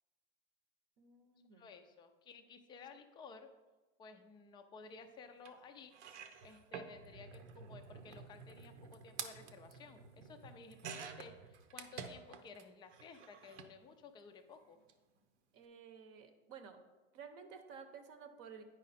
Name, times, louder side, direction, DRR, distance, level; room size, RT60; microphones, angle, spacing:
voice 1, 1.0-1.7 15.5-16.8 17.1-18.6, right 6 dB, 40° right, 7 dB, 0.8 m, -53 dB
voice 2, 1.5-3.5 4.0-5.9 6.4-14.8, left 4 dB, 15° left, 6 dB, 0.4 m, -55 dB
sound 1, 5.4-5.5 5.9-12.6 12.9-13.7 14.7-14.9 15.2-15.3, right 6 dB, 90° right, 0.9 m, -50 dB
9.5 x 5.0 x 4.1 m, 1.2 s
supercardioid pair, 135°, 34 cm